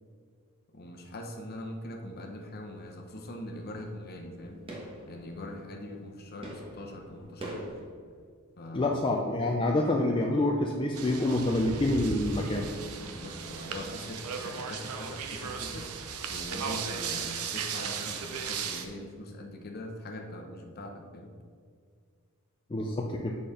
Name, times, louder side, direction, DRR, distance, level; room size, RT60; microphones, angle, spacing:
voice 1, 0.7-4.6 5.1-7.7 8.6-8.9 13.0-21.3, left 1 dB, 45° left, 2 dB, 0.9 m, -42 dB
sound 1, 1.4-1.8 2.1-7.9, right 1 dB, 25° right, 1.2 m, -45 dB
voice 2, 8.7-12.7 22.7-23.3, left 1 dB, 20° left, 0 dB, 0.4 m, -27 dB
sound 2, 10.9-18.9, right 6 dB, 85° right, 0.7 m, -36 dB
7.6 x 4.3 x 5.0 m, 2.1 s
head